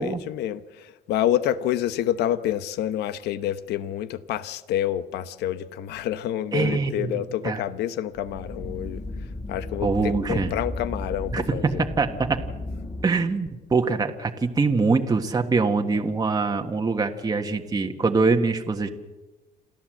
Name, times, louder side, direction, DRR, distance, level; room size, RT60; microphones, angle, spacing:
voice 1, 0.0-9.0 9.5-11.9, left 11 dB, 80° left, 1.0 m, -28 dB
voice 2, 6.5-7.6 9.8-10.6 11.3-12.4 13.0-18.9, right 4 dB, 20° right, 1.6 m, -24 dB
sound 1, 8.2-13.1, left 2 dB, 15° left, 3.6 m, -34 dB
28.0 x 13.5 x 7.7 m
cardioid pair, 110°, 17 cm